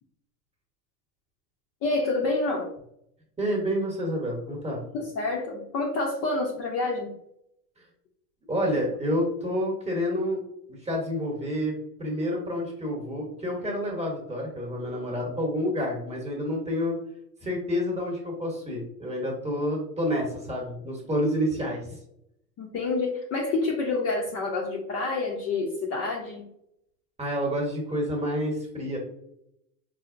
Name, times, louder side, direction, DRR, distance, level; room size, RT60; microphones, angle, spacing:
voice 1, 1.8-2.7 4.9-7.1 22.6-26.4, left 3 dB, 30° left, -2 dB, 0.6 m, -28 dB
voice 2, 3.4-4.8 8.5-10.4 10.7-11.7 12.0-17.0 17.4-21.8 27.2-29.0, equal, 15° right, -1 dB, 1.0 m, -28 dB
4.4 x 2.1 x 2.5 m, 0.76 s
hypercardioid pair, 100°, 49 cm